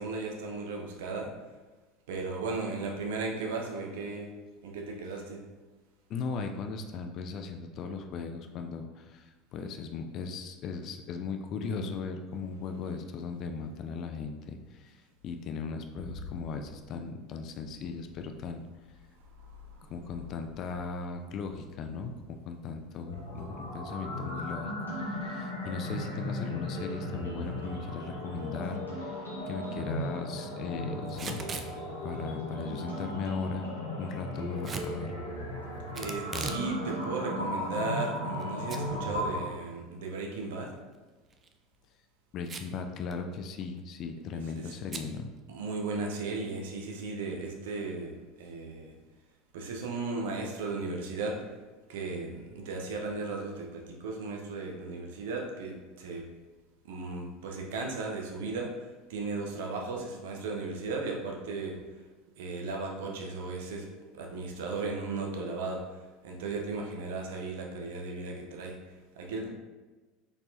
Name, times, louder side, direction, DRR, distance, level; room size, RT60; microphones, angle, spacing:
voice 1, 0.0-1.3 2.1-4.3 4.6-5.4 19.4-19.9 35.9-40.7 44.6-44.7 45.5-48.9 49.5-51.4 51.9-56.3 56.8-62.0 62.4-63.9 64.1-69.5, right 3 dB, 65° right, 1 dB, 0.7 m, -36 dB
voice 2, 6.1-15.0 15.2-18.6 19.9-24.7 25.0-31.4 32.0-33.7 34.0-35.1 42.3-45.3, left 5 dB, 45° left, 5 dB, 0.4 m, -37 dB
sound 1, 23.0-39.5, left 1 dB, 85° left, 0.9 m, -36 dB
Packing tape duct tape / Tearing, 31.1-31.7 34.6-34.9 35.9-36.7 37.0-37.1 37.8-38.4 38.7-38.8 39.2-39.3 41.3-41.5 42.4-42.8 43.1-43.2 43.4-43.8 44.9-45.1, right 4 dB, 30° right, 0.4 m, -38 dB
4.1 x 3.5 x 2.7 m, 1.3 s
figure-of-eight pair, 75°, 0 cm